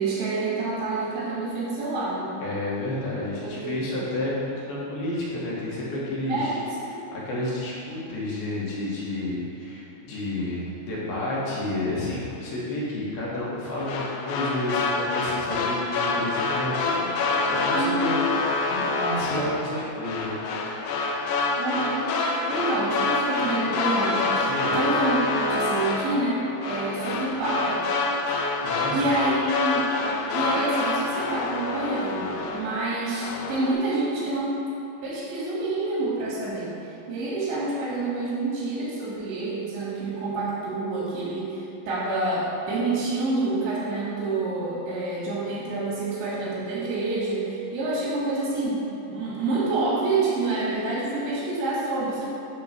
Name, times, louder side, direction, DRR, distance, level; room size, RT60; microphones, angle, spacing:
voice 1, 0.0-2.3 3.4-3.9 6.3-7.0 17.7-18.0 21.6-27.8 28.3-28.4 28.9-29.9 30.3-34.6 35.0-48.8 49.1-52.3, right 2 dB, 85° right, -7 dB, 4.3 m, -28 dB
voice 2, 2.4-6.5 7.2-18.2 18.7-20.4 20.7-20.8 21.2-21.3 24.3-24.7 28.6-29.2, left 1 dB, 70° left, -7 dB, 2.9 m, -30 dB
sound 1, 13.8-32.9 33.2-33.7, left 3 dB, 85° left, 2.7 m, -27 dB
8.6 x 3.7 x 6.6 m, 2.8 s
omnidirectional pair, 5.0 m